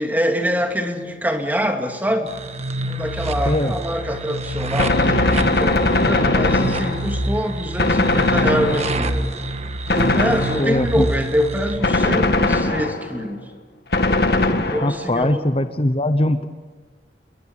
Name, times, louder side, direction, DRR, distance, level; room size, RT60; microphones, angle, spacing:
voice 1, 0.0-2.3 2.9-9.3 9.9-13.5 14.5-15.5, equal, 10° right, 4 dB, 2.4 m, -24 dB
sound 1, 2.3-11.8, right 1 dB, 40° right, 1.5 m, -27 dB
Gunshot gunfire, 4.8-7.3 7.8-9.2 9.9-10.9 11.8-13.2 13.9-15.2, left 2 dB, 60° left, 1.9 m, -20 dB
voice 2, 10.6-11.1 14.8-16.5, left 1 dB, 35° left, 9 dB, 0.9 m, -20 dB
28.5 x 22.0 x 8.8 m, 1.4 s
head